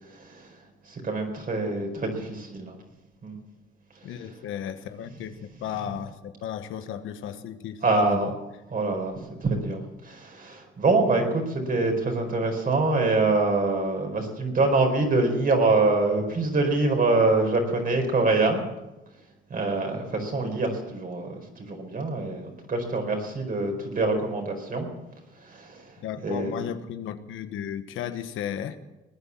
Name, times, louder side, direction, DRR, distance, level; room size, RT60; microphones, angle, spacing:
voice 1, 0.1-0.6 0.8-2.8 3.2-3.4 4.0-4.1 7.8-8.3 8.7-18.6 19.5-24.9 25.4-26.0 26.2-26.8, right 3 dB, 45° right, 3 dB, 4.8 m, -25 dB
voice 2, 4.0-8.3 26.0-28.8, left 9 dB, 85° left, 9 dB, 1.3 m, -34 dB
19.5 x 9.9 x 7.3 m, 0.99 s
cardioid pair, 90°, 20 cm